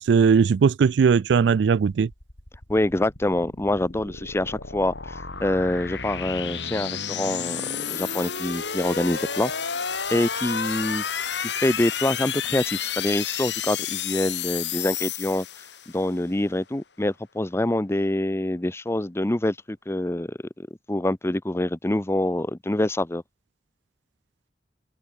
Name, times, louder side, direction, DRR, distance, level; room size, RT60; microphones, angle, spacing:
voice 1, 0.0-2.1, right 6 dB, 70° right, 0.4 m, -19 dB
sound 1, 2.1-16.1, left 7 dB, 75° left, 4.3 m, -31 dB
voice 2, 2.7-7.6 7.9-9.5 10.1-11.0 11.4-15.5 15.9-23.2, left 1 dB, 15° left, 0.7 m, -26 dB
open air
head